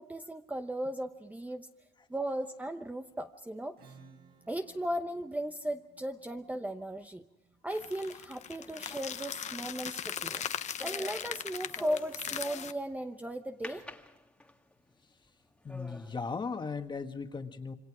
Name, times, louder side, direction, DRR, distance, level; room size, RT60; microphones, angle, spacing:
voice 1, 0.0-1.7 2.1-3.8 4.5-7.2 7.6-10.4 10.8-13.8, right 1 dB, 10° right, 6 dB, 0.8 m, -36 dB
Acoustic guitar / Strum, 3.8-9.1, right 4 dB, 65° right, 6.5 m, -61 dB
sound 1, 7.7-12.7, left 8 dB, 45° left, 0.9 m, -39 dB
sound 2, 8.6-13.0 13.6-14.7 15.2-15.3 15.7-16.1, left 1 dB, 5° left, 1.6 m, -48 dB
voice 2, 15.6-17.7, left 4 dB, 25° left, 7 dB, 1.7 m, -37 dB
27.0 x 24.5 x 4.9 m, 0.91 s
cardioid pair, 110°, 17 cm